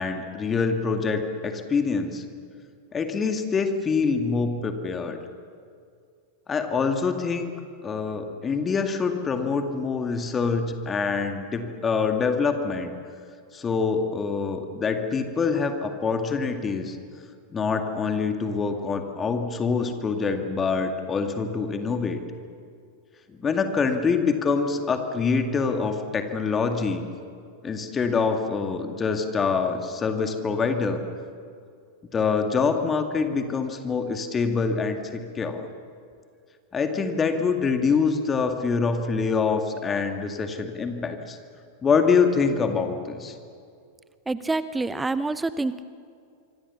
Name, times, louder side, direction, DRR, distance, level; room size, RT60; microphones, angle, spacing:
voice 1, 0.0-2.2 2.9-5.2 6.5-7.5 7.8-12.9 13.5-17.0 17.5-22.2 23.4-27.0 27.6-31.0 32.1-35.7 36.7-41.4 41.8-43.3, left 5 dB, 20° left, 6 dB, 2.1 m, -25 dB
voice 2, 44.3-45.8, right 3 dB, 10° right, 15 dB, 0.7 m, -27 dB
26.0 x 25.0 x 7.2 m, 2.3 s
figure-of-eight pair, 90°, 0 cm